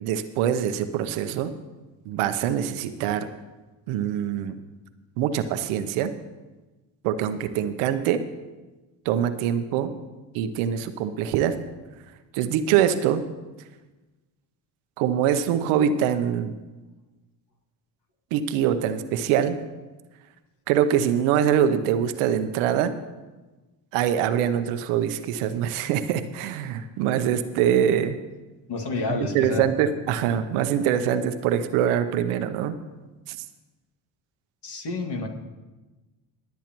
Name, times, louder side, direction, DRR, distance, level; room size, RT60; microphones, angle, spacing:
voice 1, 0.0-1.5 2.1-3.3 3.9-4.6 5.2-6.1 7.0-8.2 9.0-9.9 10.3-11.5 12.3-13.2 15.0-16.6 18.3-19.6 20.7-22.9 23.9-28.2 29.1-32.8 33.3-33.4, right 9 dB, 80° right, 11 dB, 0.8 m, -24 dB
voice 2, 28.7-29.7 34.6-35.3, left 3 dB, 55° left, 3 dB, 2.2 m, -29 dB
21.5 x 8.1 x 3.0 m, 1.2 s
hypercardioid pair, 50°, 49 cm